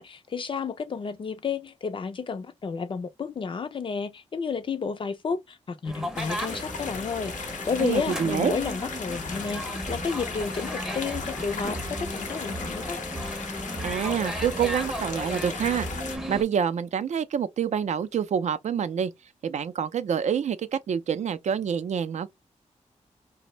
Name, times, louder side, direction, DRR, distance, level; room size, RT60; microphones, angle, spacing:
voice 1, 0.0-13.0, left 5 dB, 45° left, 0.4 m, -31 dB
sound 1, 5.9-16.4, equal, 5° right, 0.6 m, -35 dB
sound 2, 6.2-16.2, left 5 dB, 85° left, 0.6 m, -37 dB
voice 2, 7.8-8.5 13.8-15.9 16.3-19.1 19.4-22.3, right 8 dB, 70° right, 0.4 m, -27 dB
2.6 x 2.0 x 2.9 m
wide cardioid pair, 115°, 13 cm